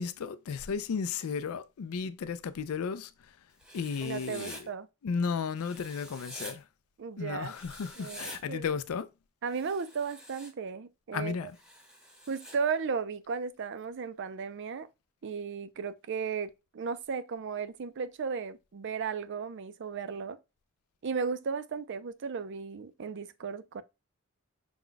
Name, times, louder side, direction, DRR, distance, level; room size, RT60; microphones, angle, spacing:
voice 1, 0.0-3.4 3.7-4.7 5.0-6.7 7.2-9.1 11.1-11.5, left 6 dB, 75° left, 0.4 m, -34 dB
Writing, 3.6-4.6 5.6-6.5 7.5-8.4 9.5-10.5 11.5-12.6, equal, 5° right, 0.8 m, -47 dB
voice 2, 4.0-4.9 7.0-7.5 8.0-8.6 9.4-11.5 12.3-14.9 15.2-20.4 21.0-23.8, right 5 dB, 55° right, 0.4 m, -35 dB
5.9 x 2.2 x 3.9 m
head